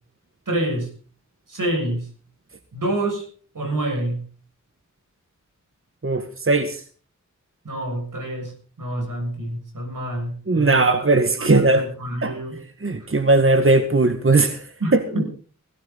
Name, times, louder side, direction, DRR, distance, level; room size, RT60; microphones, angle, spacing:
voice 1, 0.5-0.9 1.5-2.1 2.7-3.2 3.5-4.2 7.6-8.5 8.8-11.0 11.3-12.6 14.8-15.3, right 1 dB, 85° right, 3 dB, 7.0 m, -27 dB
voice 2, 6.0-6.8 10.5-11.8 12.2-12.3 12.8-15.0, right 3 dB, 40° right, 8 dB, 1.8 m, -18 dB
17.5 x 16.0 x 4.2 m, 0.40 s
wide cardioid pair, 65°, 31 cm